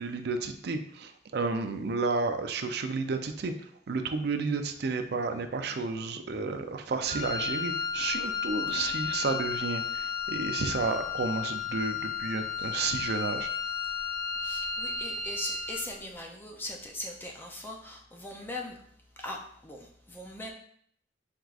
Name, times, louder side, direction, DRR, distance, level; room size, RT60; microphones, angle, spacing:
voice 1, 0.0-3.5 3.9-13.5, right 4 dB, 60° right, 7 dB, 0.4 m, -31 dB
Wind instrument woodwind instrument, 7.0-15.9, left 6 dB, 40° left, 1.1 m, -33 dB
voice 2, 14.4-18.8 19.2-20.5, left 1 dB, 10° left, 0 dB, 0.4 m, -40 dB
4.6 x 3.6 x 2.4 m, 0.65 s
head